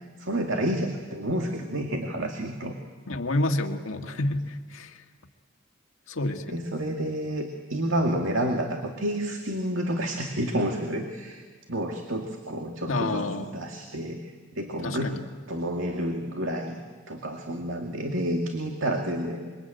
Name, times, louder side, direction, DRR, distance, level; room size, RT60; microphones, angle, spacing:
voice 1, 0.2-2.8 6.5-11.4 11.7-14.2 14.6-15.2 15.5-16.8 17.1-19.5, right 1 dB, 75° right, 2 dB, 2.2 m, -29 dB
voice 2, 3.1-5.0 6.1-6.6 12.9-13.6 14.8-15.2, left 2 dB, 85° left, 5 dB, 1.8 m, -29 dB
26.0 x 24.0 x 9.1 m, 1.5 s
head